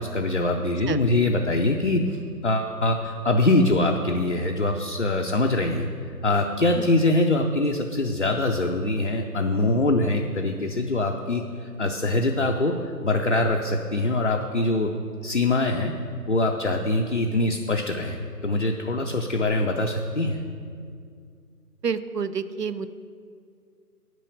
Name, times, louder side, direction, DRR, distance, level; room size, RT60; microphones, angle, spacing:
voice 1, 0.0-5.9 6.2-14.9 15.2-15.9 16.3-20.4, left 2 dB, 50° left, 2 dB, 0.6 m, -23 dB
voice 2, 21.8-22.9, right 6 dB, 80° right, 14 dB, 0.7 m, -29 dB
9.2 x 5.5 x 7.9 m, 2.3 s
figure-of-eight pair, 160°, 48 cm